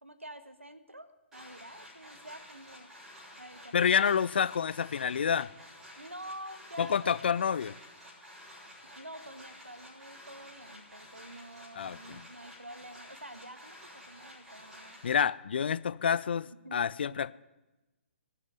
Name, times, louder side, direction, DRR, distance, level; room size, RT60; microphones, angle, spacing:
voice 1, 0.0-2.9 3.4-4.1 6.0-7.2 8.9-15.0 16.5-16.8 17.1-17.2, right 1 dB, 85° right, 1.4 m, -48 dB
sound 1, 1.3-15.2, left 1 dB, 10° right, 5.9 m, -51 dB
voice 2, 3.7-5.5 6.8-7.7 11.7-12.3 15.0-17.3, left 7 dB, 55° left, 0.4 m, -28 dB
17.5 x 6.7 x 9.4 m
figure-of-eight pair, 130°, 7 cm